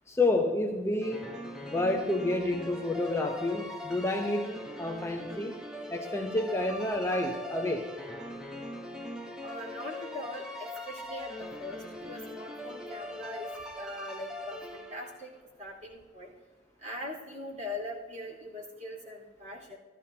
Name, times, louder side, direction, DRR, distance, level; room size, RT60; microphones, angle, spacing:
voice 1, 0.1-1.3 1.6-5.5 5.9-7.9, left 2 dB, 15° left, 2 dB, 0.8 m, -29 dB
sound 1, 1.0-15.3, left 1 dB, 5° right, 1.0 m, -41 dB
voice 2, 9.4-13.5 13.8-15.3 15.6-16.3 16.8-19.8, left 1 dB, 40° right, -3 dB, 4.0 m, -41 dB
15.5 x 13.0 x 2.8 m, 1.4 s
head